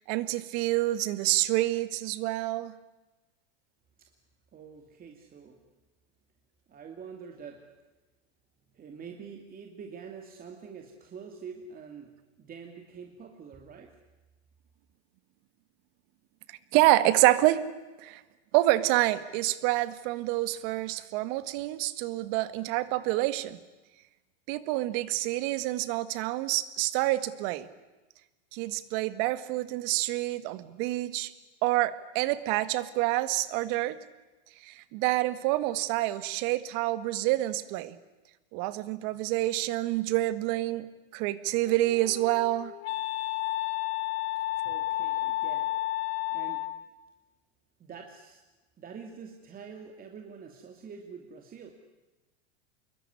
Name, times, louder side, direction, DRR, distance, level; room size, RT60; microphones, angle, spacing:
voice 1, 0.1-2.7 16.7-17.6 18.0-18.2 18.5-23.6 24.5-27.7 28.5-31.3 31.6-34.0 34.6-38.0 38.5-40.9 41.1-42.7, right 17 dB, 55° right, 14 dB, 1.8 m, -27 dB
voice 2, 4.5-5.6 6.7-7.7 8.7-13.9 44.6-45.7 46.3-46.6 47.8-48.4 48.8-51.7, right 6 dB, 25° right, 3 dB, 2.7 m, -46 dB
Wind instrument woodwind instrument, 41.4-46.9, left 16 dB, 70° left, 2.4 m, -32 dB
26.5 x 22.0 x 9.9 m, 1.1 s
supercardioid pair, 130°, 34 cm